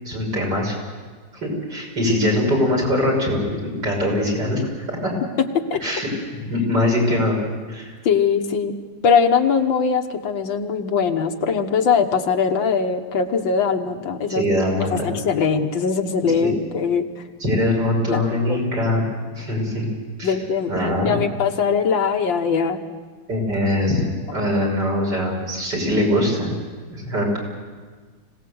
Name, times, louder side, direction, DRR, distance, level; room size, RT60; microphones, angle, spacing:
voice 1, 0.0-0.7 1.4-4.6 5.0-5.1 5.8-6.1 6.5-7.3 7.7-7.9 14.3-15.1 16.4-16.5 17.4-19.0 19.4-19.8 20.2-20.3 20.7-21.2 23.3-24.0 24.3-26.5 26.9-27.3, left 1 dB, 60° right, -2 dB, 6.5 m, -22 dB
voice 2, 8.1-8.8 9.0-14.5 14.9-17.2 18.1-18.2 18.5-18.6 20.2-22.8, left 6 dB, 80° left, 5 dB, 2.0 m, -21 dB
25.5 x 17.5 x 7.9 m, 1.5 s
omnidirectional pair, 2.0 m